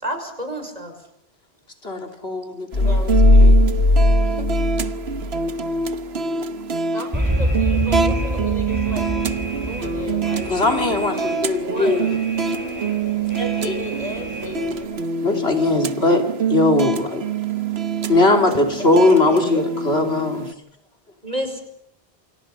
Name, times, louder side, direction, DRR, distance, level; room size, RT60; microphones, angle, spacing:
voice 1, 0.0-1.0 4.4-4.5 11.6-12.0 21.2-21.6, equal, 40° right, 6 dB, 5.4 m, -29 dB
voice 2, 1.8-3.0 3.4-3.8 10.5-12.1 13.4-13.8 15.2-16.2 16.5-17.2 18.1-20.5, left 2 dB, 80° left, 4 dB, 3.4 m, -20 dB
sound 1, 2.7-5.5, left 2 dB, 60° left, 1.9 m, -16 dB
voice 3, 2.7-3.7 6.9-9.1 9.6-10.5 13.6-14.7 18.5-19.7, left 1 dB, 40° left, 4 dB, 6.7 m, -35 dB
sound 2, 2.7-20.5, right 5 dB, 85° right, 1.4 m, -25 dB
Alarm, 7.1-14.8, equal, 15° right, 6.5 m, -28 dB
28.5 x 25.0 x 5.6 m, 0.73 s
omnidirectional pair, 1.0 m